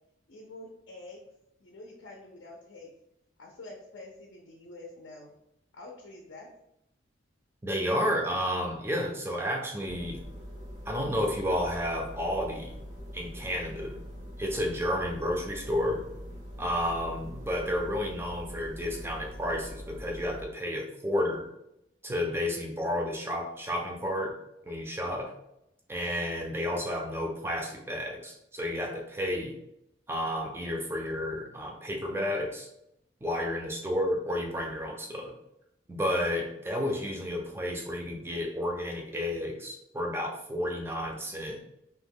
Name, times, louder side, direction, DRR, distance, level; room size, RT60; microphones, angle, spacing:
voice 1, 0.3-1.2 1.6-2.9 3.4-5.3 5.7-6.5, left 2 dB, 70° left, 0 dB, 0.5 m, -47 dB
voice 2, 7.6-10.2 10.9-12.7 13.1-14.0 14.4-16.0 16.6-21.5 22.0-24.4 24.7-25.3 25.9-29.6 30.1-32.7 33.2-35.3 35.9-41.6, equal, 10° right, 1 dB, 0.4 m, -31 dB
sound 1, 9.8-20.4, equal, 85° right, 1.3 m, -43 dB
2.8 x 2.1 x 3.5 m, 0.82 s
head